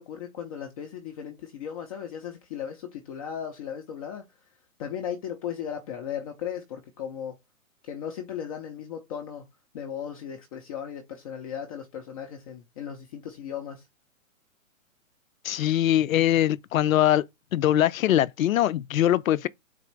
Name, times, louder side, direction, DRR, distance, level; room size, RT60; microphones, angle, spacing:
voice 1, 0.0-4.2 4.8-7.3 7.8-9.4 9.7-13.8, left 8 dB, 25° left, 0.6 m, -36 dB
voice 2, 15.4-17.2 17.5-19.5, left 12 dB, 75° left, 0.5 m, -22 dB
4.1 x 2.5 x 4.4 m
hypercardioid pair, 140°, 41 cm